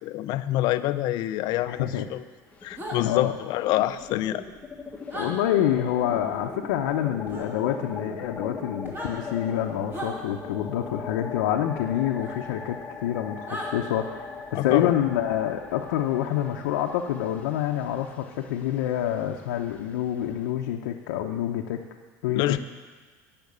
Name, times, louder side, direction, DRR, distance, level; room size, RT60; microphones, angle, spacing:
voice 1, 0.0-2.2 2.6-4.4 14.5-14.9 22.3-22.6, left 14 dB, 50° left, 12 dB, 0.5 m, -26 dB
sound 1, 1.4-2.2 2.5-20.5, left 4 dB, 15° left, 0.9 m, -40 dB
voice 2, 1.7-2.1 3.0-3.3 5.1-21.8 22.2-22.6, left 11 dB, 85° left, 1 dB, 0.7 m, -27 dB
sound 2, 2.8-3.0 5.1-5.3 7.3-7.5 8.8-9.1 9.9-10.1 12.2-12.3 13.5-13.7, right 1 dB, 20° right, 2.5 m, -35 dB
10.5 x 5.9 x 8.6 m, 1.4 s
supercardioid pair, 135°, 9 cm